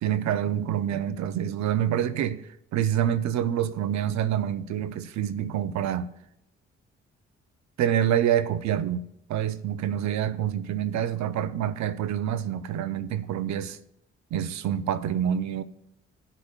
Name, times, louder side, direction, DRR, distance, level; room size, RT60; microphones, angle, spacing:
voice 1, 0.0-2.4 2.7-6.1 7.8-13.8 14.3-15.6, right 10 dB, 70° right, 0.7 m, -27 dB
16.0 x 6.9 x 2.4 m
supercardioid pair, 50°, 29 cm